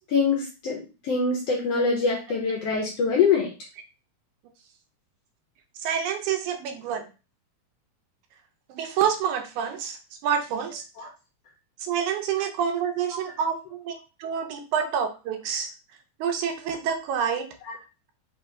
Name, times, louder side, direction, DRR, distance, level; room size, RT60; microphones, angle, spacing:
voice 1, 0.1-3.5 11.0-11.1 17.6-17.7, left 5 dB, 70° left, -1 dB, 1.5 m, -24 dB
voice 2, 5.8-7.1 8.7-10.8 11.8-15.7 16.2-17.5, right 7 dB, 80° right, 5 dB, 2.0 m, -28 dB
5.1 x 2.8 x 3.5 m, 0.31 s
omnidirectional pair, 3.6 m